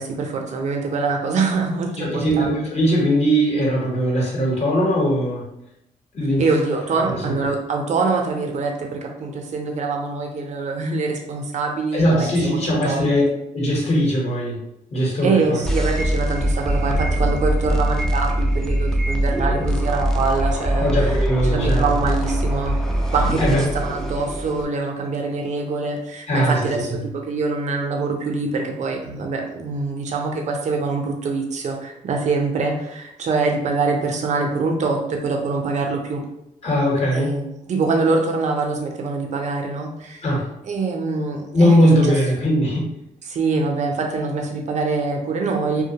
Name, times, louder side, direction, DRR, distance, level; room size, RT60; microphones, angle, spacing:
voice 1, 0.0-2.6 6.4-13.0 15.2-21.2 21.4-36.2 37.1-40.2 40.6-41.9 43.3-45.8, right 4 dB, 55° right, 2 dB, 0.5 m, -24 dB
voice 2, 2.0-5.4 6.1-6.4 7.0-7.3 11.9-13.2 13.5-14.6 14.9-15.6 20.8-21.9 23.4-23.7 26.3-27.0 36.6-37.3 40.2-40.5 41.5-42.9, equal, 50° left, -3 dB, 1.0 m, -20 dB
sound 1, 15.7-24.7, right 1 dB, 5° left, 0.3 m, -22 dB
sound 2, 16.5-20.6, equal, 75° left, 0.5 m, -34 dB
2.3 x 2.1 x 2.8 m, 0.82 s
cardioid pair, 90°, 14 cm